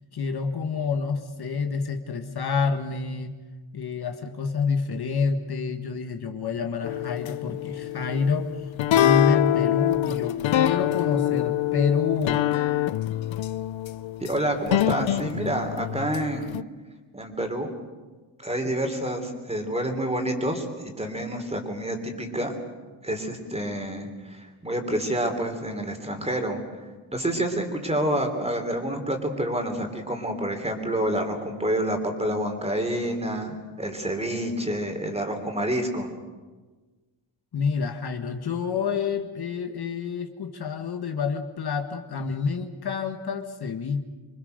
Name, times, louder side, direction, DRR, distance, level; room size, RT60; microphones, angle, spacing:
voice 1, 0.1-3.4 3.7-8.5 8.9-12.5 37.5-44.0, left 5 dB, 50° left, 6 dB, 1.6 m, -28 dB
sound 1, 6.8-16.6, left 12 dB, 75° left, 0.7 m, -25 dB
voice 2, 14.2-16.6 17.1-17.8 18.4-20.7 21.0-22.5 23.0-26.6 27.1-36.1, right 1 dB, 15° right, 5 dB, 3.2 m, -28 dB
26.5 x 24.0 x 6.6 m, 1.3 s
wide cardioid pair, 155°, 47 cm